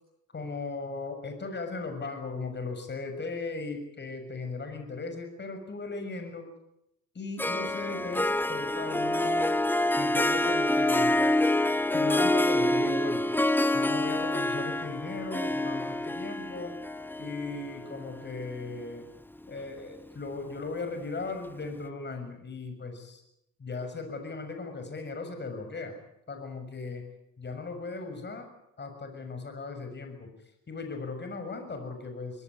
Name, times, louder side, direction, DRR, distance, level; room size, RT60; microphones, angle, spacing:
voice 1, 0.3-6.5 7.1-9.5 10.0-11.2 11.9-13.2 13.7-16.7 17.2-19.1 19.5-23.2 23.6-25.9 26.3-27.0 27.4-28.5 28.8-32.4, left 3 dB, 35° left, 6 dB, 6.8 m, -37 dB
Harp, 7.4-18.8, left 1 dB, 5° left, 0.9 m, -27 dB
24.0 x 18.5 x 9.8 m, 0.82 s
cardioid pair, 90°, 30 cm